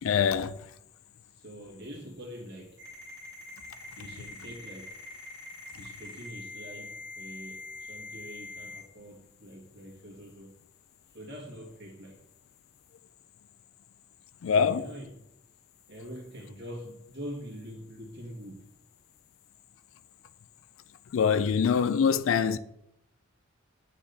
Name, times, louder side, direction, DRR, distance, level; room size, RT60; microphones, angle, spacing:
voice 1, 0.0-0.5 14.4-14.9 21.1-22.6, left 6 dB, 70° left, 0.4 m, -24 dB
voice 2, 1.3-2.8 4.0-4.9 5.7-10.6 11.1-12.2 14.4-15.2 15.9-18.7, equal, 55° right, 1.6 m, -44 dB
Ringtone, 2.8-8.8, left 2 dB, 15° right, 2.3 m, -44 dB
8.6 x 4.0 x 3.4 m
head